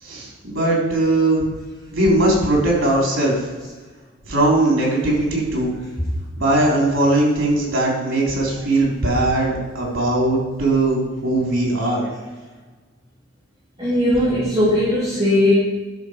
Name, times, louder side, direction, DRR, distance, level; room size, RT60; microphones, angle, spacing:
voice 1, 0.0-1.5 1.9-3.5 4.3-5.7 6.4-12.1, right 1 dB, 80° right, -2 dB, 3.6 m, -19 dB
voice 2, 13.8-15.5, left 1 dB, 25° right, -10 dB, 2.8 m, -18 dB
11.5 x 6.3 x 5.1 m, 1.3 s
head